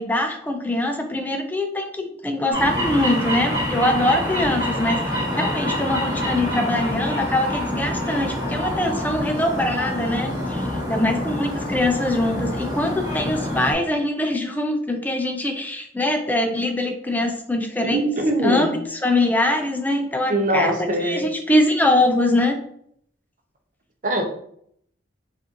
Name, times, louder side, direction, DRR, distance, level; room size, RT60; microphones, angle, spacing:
voice 1, 0.0-18.0 18.4-22.6, left 1 dB, 10° left, 4 dB, 0.4 m, -23 dB
sound 1, 2.5-13.7, left 1 dB, 20° right, 1.5 m, -26 dB
voice 2, 17.8-18.7 20.3-21.3 24.0-24.2, right 1 dB, 45° right, 2 dB, 0.7 m, -22 dB
4.7 x 2.6 x 2.8 m, 0.67 s
head